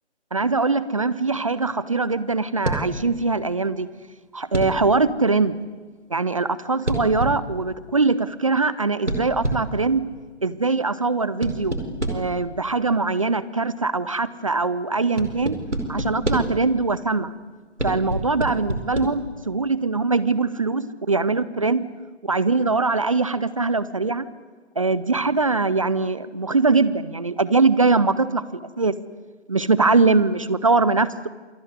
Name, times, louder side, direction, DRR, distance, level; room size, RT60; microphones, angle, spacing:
voice 1, 0.3-3.9 4.3-5.6 6.1-10.1 10.4-11.7 12.1-15.6 15.9-17.3 17.8-21.9 22.2-24.3 24.8-28.9 29.5-31.3, right 3 dB, 30° right, 16 dB, 0.7 m, -22 dB
sound 1, 2.6-3.0 4.5-4.9 6.9-7.5 9.1-9.8 11.4-12.4 15.2-16.7 17.8-19.0, right 1 dB, 85° right, 4.9 m, -27 dB
27.0 x 19.5 x 9.7 m, 1.4 s
figure-of-eight pair, 150°, 34 cm